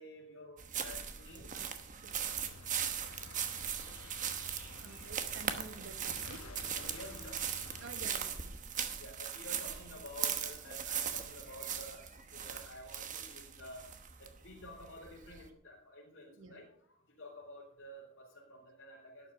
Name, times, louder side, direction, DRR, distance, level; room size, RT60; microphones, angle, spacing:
voice 1, 0.0-1.5 6.4-7.4 9.0-12.0 12.3-13.8 14.2-19.3, left 1 dB, 60° left, -6 dB, 3.6 m, -51 dB
sound 1, 0.6-15.5, right 8 dB, 35° right, 1.1 m, -39 dB
voice 2, 1.5-2.6 4.7-6.6 7.8-8.7 16.3-16.7, right 3 dB, 60° right, 10 dB, 1.2 m, -52 dB
sound 2, 2.1-8.1, left 3 dB, 85° left, 1.1 m, -53 dB
12.0 x 9.5 x 5.6 m, 0.65 s
head